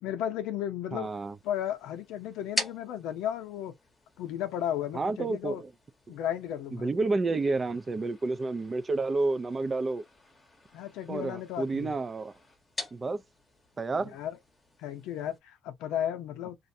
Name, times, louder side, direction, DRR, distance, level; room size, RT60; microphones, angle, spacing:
voice 1, 0.0-1.1 1.4-3.8 4.2-5.6 6.1-6.9 10.7-12.0 14.1-14.4 14.8-16.6, left 10 dB, 85° left, 0.6 m, -34 dB
voice 2, 0.9-1.4 4.9-5.7 6.7-10.0 11.1-12.3 12.9-13.2 13.8-14.2, right 3 dB, 25° right, 0.3 m, -30 dB
sound 1, 1.0-15.4, left 2 dB, 15° left, 0.8 m, -44 dB
2.4 x 2.1 x 2.6 m
cardioid pair, 135°, 0 cm